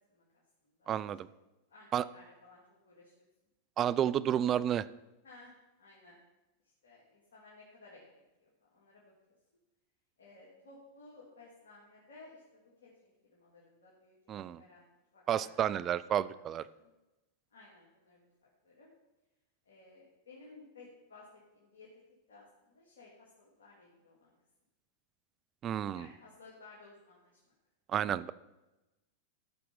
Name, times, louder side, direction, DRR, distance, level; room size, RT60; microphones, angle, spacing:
voice 1, 0.1-0.4 0.8-0.9 1.7-3.2 5.2-5.5 5.8-6.2 6.8-9.1 10.2-14.9 15.1-15.7 16.3-16.9 17.5-18.9 19.7-21.3 21.5-22.0 22.3-24.4 25.9-27.5, left 3 dB, 75° left, -5 dB, 2.8 m, -57 dB
voice 2, 0.9-1.3 1.9-2.0 3.8-4.9 14.3-14.6 15.3-16.6 25.6-26.1 27.9-28.3, right 10 dB, 35° right, 17 dB, 0.5 m, -31 dB
14.0 x 5.9 x 5.5 m, 1.0 s
hypercardioid pair, 95°, 0 cm